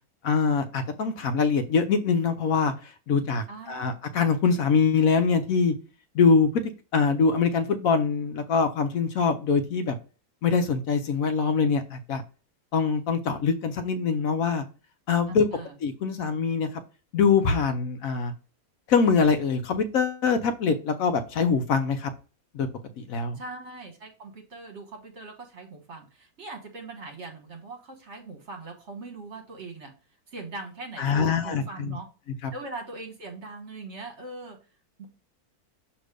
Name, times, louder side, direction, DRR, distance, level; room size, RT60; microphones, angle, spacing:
voice 1, 0.2-5.7 6.1-6.6 6.9-9.9 10.4-12.2 12.7-14.7 15.1-15.5 15.8-16.8 17.1-18.3 18.9-22.1 22.5-22.7 23.0-23.4 31.0-32.0 32.4-32.5, left 5 dB, 70° left, 8 dB, 1.0 m, -24 dB
voice 2, 3.5-3.9 15.3-15.7 23.3-29.9 30.3-32.1 32.5-34.6 35.0-35.1, right 3 dB, 50° right, 3 dB, 1.6 m, -41 dB
6.5 x 2.9 x 4.9 m, 0.35 s
omnidirectional pair, 1.6 m